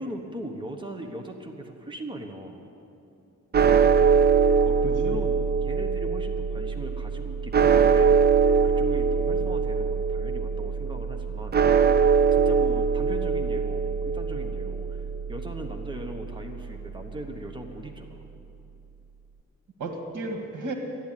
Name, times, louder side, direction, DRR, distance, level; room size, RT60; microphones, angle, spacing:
voice 1, 0.0-2.6 4.8-8.2 8.6-11.6 12.3-18.2, right 1 dB, 15° right, 4 dB, 1.1 m, -38 dB
sound 1, 3.5-17.8, right 6 dB, 35° right, 0.5 m, -23 dB
voice 2, 3.6-4.0 4.7-5.1 12.2-12.3 19.8-20.7, right 2 dB, 85° right, 3 dB, 2.0 m, -35 dB
13.0 x 10.5 x 9.1 m, 2.7 s
wide cardioid pair, 125°, 30 cm